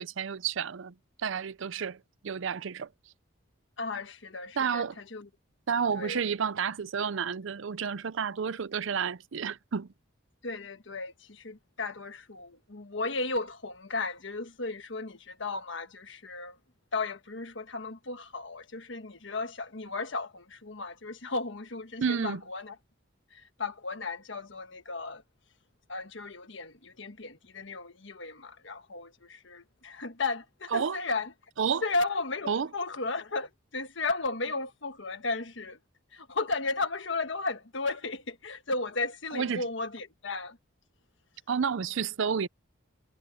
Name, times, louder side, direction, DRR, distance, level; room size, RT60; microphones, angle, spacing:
voice 1, 0.0-2.9 4.6-5.0 5.7-9.9 22.0-22.4 30.7-31.0 31.6-31.8 32.5-32.7 39.3-39.7 41.5-42.5, right 6 dB, 70° right, 0.5 m, -30 dB
voice 2, 3.8-5.3 5.9-6.2 10.4-16.6 16.9-22.7 23.3-25.2 25.9-31.3 31.8-35.8 36.1-40.6, left 3 dB, 65° left, 1.4 m, -35 dB
head